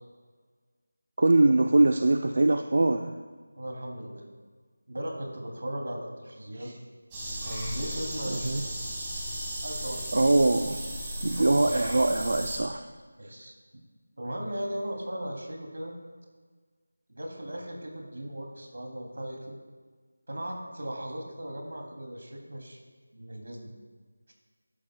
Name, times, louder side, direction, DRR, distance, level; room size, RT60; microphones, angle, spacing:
voice 1, 1.2-3.1 6.5-6.7 8.3-8.6 10.1-10.8 11.2-12.8 13.2-13.3, right 2 dB, 50° right, 7 dB, 0.4 m, -23 dB
voice 2, 3.6-4.2 4.9-6.7 7.4-8.6 9.6-10.2 11.4-11.6 13.2-13.8 14.2-15.9 17.1-19.5 20.3-22.8 23.1-23.7, right 1 dB, 75° right, 1 dB, 2.6 m, -37 dB
sound 1, 7.1-12.6, equal, 10° right, 1.5 m, -35 dB
12.0 x 11.5 x 2.2 m, 1.5 s
figure-of-eight pair, 175°, 0 cm